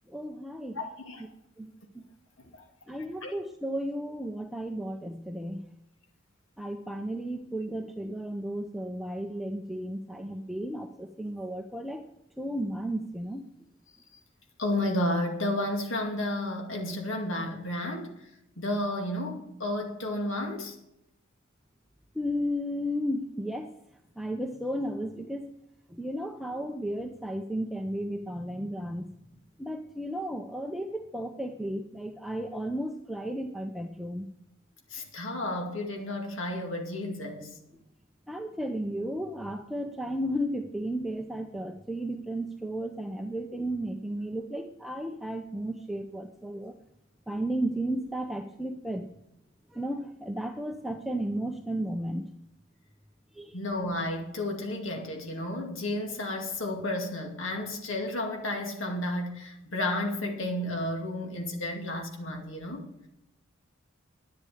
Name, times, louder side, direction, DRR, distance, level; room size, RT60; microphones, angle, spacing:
voice 1, 0.1-0.8 1.6-2.1 2.9-5.6 6.6-12.0 12.4-13.5 22.2-23.7 24.2-25.5 25.9-29.0 29.6-34.3 38.3-46.7 47.3-49.1 49.7-52.3 53.4-53.5, equal, ahead, 4 dB, 0.6 m, -34 dB
voice 2, 0.7-1.2 2.5-2.6 3.2-3.3 14.6-18.1 18.6-20.7 34.9-37.5 53.5-62.8, left 1 dB, 65° left, 2 dB, 2.3 m, -32 dB
10.5 x 10.5 x 5.0 m, 0.84 s
head